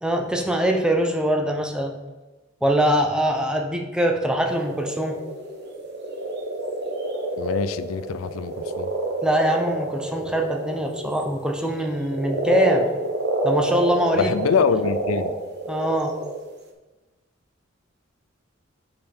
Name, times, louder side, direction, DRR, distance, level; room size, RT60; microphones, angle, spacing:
voice 1, 0.0-1.9 2.6-5.2 9.2-12.9 13.4-14.3 15.7-16.1, equal, 5° right, 2 dB, 0.7 m, -23 dB
sound 1, 4.5-16.6, right 2 dB, 55° right, 0.9 m, -28 dB
voice 2, 7.4-8.9 14.1-15.3, left 6 dB, 85° left, 13 dB, 0.4 m, -24 dB
5.4 x 5.1 x 4.4 m, 1.2 s
head